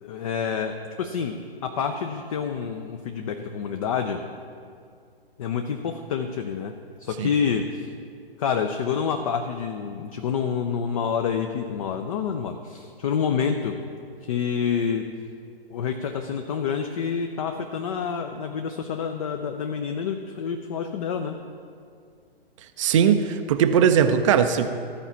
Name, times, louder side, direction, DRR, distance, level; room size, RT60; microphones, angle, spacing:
voice 1, 0.0-1.4 1.6-4.2 5.4-6.7 7.0-7.9 8.4-13.8 14.2-15.1 15.7-21.4, left 6 dB, 35° left, 6 dB, 0.5 m, -28 dB
voice 2, 22.8-24.7, right 8 dB, 30° right, 9 dB, 0.5 m, -19 dB
13.5 x 4.9 x 6.9 m, 2.3 s
figure-of-eight pair, 125°, 31 cm